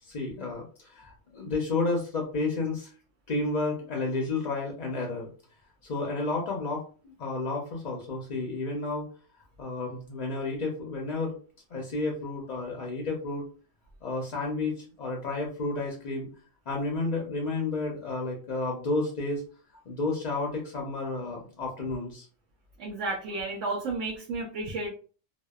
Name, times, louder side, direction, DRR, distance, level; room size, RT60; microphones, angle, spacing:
voice 1, 0.0-2.9 3.3-5.3 5.8-9.1 9.6-11.4 11.7-13.4 14.0-16.3 16.7-19.4 19.9-22.3, left 3 dB, 55° left, 0 dB, 0.5 m, -31 dB
voice 2, 22.8-24.9, right 3 dB, 85° right, -2 dB, 0.9 m, -32 dB
2.6 x 2.1 x 2.2 m, 0.38 s
omnidirectional pair, 1.2 m